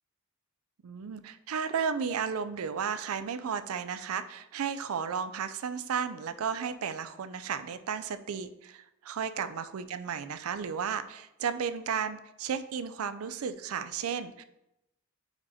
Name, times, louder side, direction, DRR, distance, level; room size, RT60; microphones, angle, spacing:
voice 1, 0.8-14.4, right 7 dB, 80° right, 12 dB, 0.4 m, -34 dB
5.1 x 4.1 x 4.8 m, 0.88 s
head